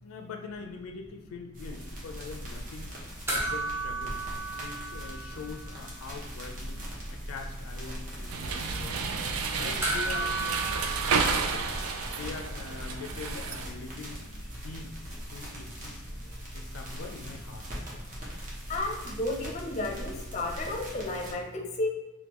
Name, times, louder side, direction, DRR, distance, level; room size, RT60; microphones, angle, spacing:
voice 1, 0.0-2.9 3.3-4.2 4.5-6.8 7.1-9.1 9.5-11.7 12.2-14.2 14.5-14.9 15.3-16.0 16.5-17.7, left 4 dB, 85° left, 4 dB, 0.4 m, -43 dB
sound 1, 1.5-21.3, equal, 40° right, 0.9 m, -41 dB
sound 2, 3.3-5.9 6.2-6.3 9.8-12.4 14.6-14.7, right 2 dB, 10° right, 0.7 m, -34 dB
sound 3, 8.3-13.7, right 5 dB, 80° right, 0.4 m, -31 dB
voice 2, 18.7-21.9, left 2 dB, 35° left, 1 dB, 0.5 m, -32 dB
3.6 x 2.2 x 2.9 m, 1.1 s
head